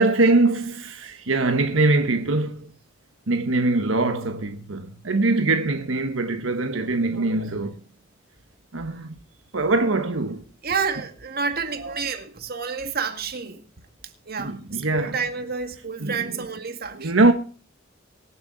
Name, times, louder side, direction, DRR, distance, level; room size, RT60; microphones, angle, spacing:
voice 1, 0.0-2.7 3.3-7.8 8.7-9.2 9.5-10.4 11.8-11.9 14.4-15.2 16.0-16.4 16.9-17.3, right 2 dB, 85° right, 1.2 m, -22 dB
voice 2, 10.6-13.6 14.3-17.1, right 5 dB, 50° right, 2.0 m, -29 dB
24.0 x 8.0 x 4.0 m
head